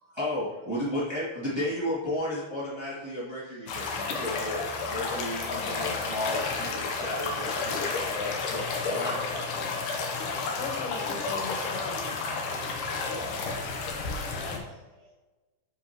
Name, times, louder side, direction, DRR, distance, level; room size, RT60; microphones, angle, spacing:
voice 1, 0.0-9.4 13.0-13.2, left 1 dB, 10° right, -10 dB, 1.3 m, -34 dB
voice 2, 3.4-4.2 14.9-15.1, right 3 dB, 70° right, -2 dB, 2.9 m, -65 dB
sound 1, 3.7-14.6, left 4 dB, 70° left, 2.1 m, -31 dB
voice 3, 5.5-5.9 10.6-12.2 14.2-14.6, left 4 dB, 85° left, 0 dB, 3.3 m, -37 dB
9.1 x 4.9 x 3.0 m, 1.2 s
omnidirectional pair, 4.5 m